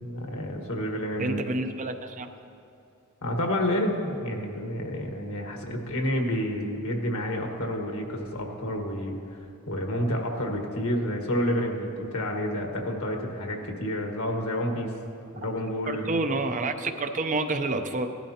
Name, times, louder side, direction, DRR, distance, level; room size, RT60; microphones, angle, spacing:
voice 1, 0.0-1.4 3.2-9.1 9.7-14.9 15.3-16.1, equal, 80° left, 2 dB, 1.5 m, -29 dB
voice 2, 1.2-2.3 15.4-15.5 15.9-18.1, right 2 dB, 35° right, 7 dB, 0.6 m, -29 dB
18.0 x 12.0 x 2.9 m, 2.5 s
head